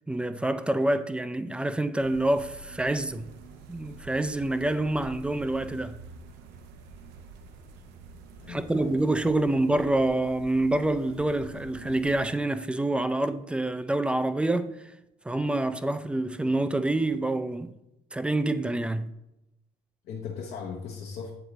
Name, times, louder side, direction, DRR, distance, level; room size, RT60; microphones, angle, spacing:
voice 1, 0.1-3.3 3.7-6.0 8.5-14.8 15.2-17.7 18.1-19.1, right 2 dB, 5° right, 0.3 m, -27 dB
sound 1, 2.0-12.3, right 4 dB, 90° right, 0.6 m, -47 dB
voice 2, 8.4-9.8 20.0-21.3, left 6 dB, 70° left, 0.8 m, -39 dB
7.9 x 3.9 x 3.1 m
cardioid pair, 110°, 17 cm